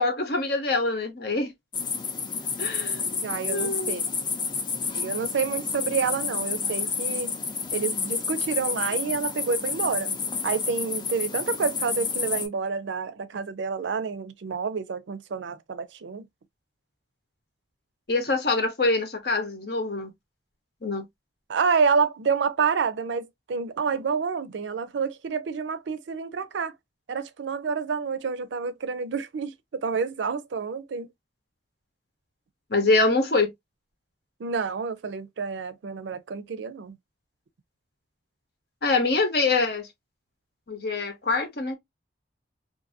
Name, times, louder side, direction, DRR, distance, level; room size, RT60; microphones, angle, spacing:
voice 1, 0.0-1.5 2.6-3.2 3.5-4.0 18.1-20.1 20.8-21.1 32.7-33.5 38.8-39.9 40.7-41.8, left 3 dB, 60° left, 0.9 m, -25 dB
sound 1, 1.7-12.5, left 5 dB, 25° left, 0.5 m, -30 dB
voice 2, 3.2-4.0 4.9-7.3 7.7-10.2 10.4-16.3 21.5-26.7 27.1-29.5 29.8-31.1 34.4-37.0, right 5 dB, 85° right, 0.4 m, -28 dB
2.6 x 2.6 x 2.5 m
head